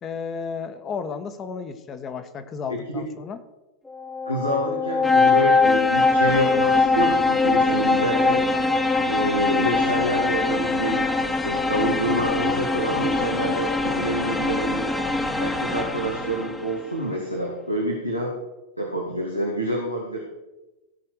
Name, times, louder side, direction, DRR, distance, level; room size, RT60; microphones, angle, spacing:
voice 1, 0.0-3.4, left 6 dB, 25° left, 10 dB, 1.3 m, -33 dB
voice 2, 2.7-3.1 4.3-8.4 9.0-14.9 15.4-18.3 18.8-20.3, right 1 dB, 90° left, -1 dB, 2.2 m, -27 dB
sound 1, 3.9-16.7, left 3 dB, 10° left, 1.1 m, -22 dB
16.5 x 5.8 x 6.5 m, 1.0 s
figure-of-eight pair, 90°, 0 cm